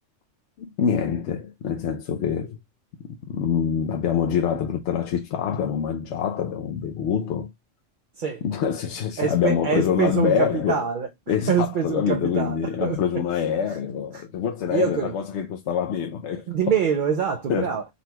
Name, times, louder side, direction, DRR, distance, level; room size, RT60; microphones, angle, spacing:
voice 1, 0.6-2.6 3.0-7.5 8.4-10.8 11.3-16.4 17.5-17.7, left 8 dB, 70° left, 0.8 m, -25 dB
voice 2, 9.2-11.1 11.5-13.0 13.7-13.8 14.1-14.2 14.7-15.1 16.5-17.9, right 7 dB, 60° right, 0.5 m, -25 dB
3.9 x 2.2 x 2.8 m
omnidirectional pair, 1.3 m